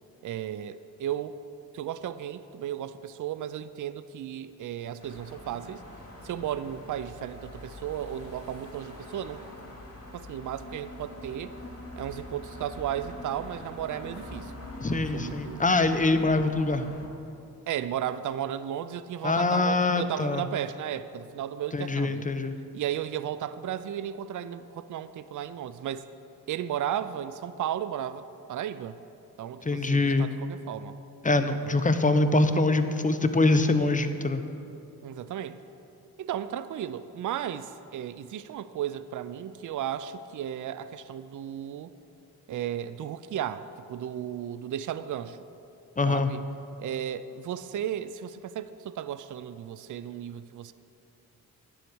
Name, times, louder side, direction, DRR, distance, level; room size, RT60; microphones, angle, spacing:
voice 1, 0.2-1.4 1.7-5.8 6.2-9.4 10.1-11.6 12.0-14.5 14.9-15.7 17.7-22.3 22.7-26.0 26.5-28.2 28.5-29.0 29.4-31.0 31.6-31.8 35.0-35.6 36.2-41.9 42.5-45.4 46.1-46.4 46.8-50.7, right 10 dB, 50° right, 13 dB, 0.5 m, -34 dB
sound 1, 5.0-17.1, left 1 dB, 40° left, 2.4 m, -44 dB
voice 2, 14.8-16.9 19.2-20.4 21.7-22.6 29.6-30.3 31.2-34.4 46.0-46.3, left 2 dB, 20° left, 9 dB, 0.7 m, -24 dB
10.0 x 4.8 x 7.8 m, 2.7 s
supercardioid pair, 45°, 38 cm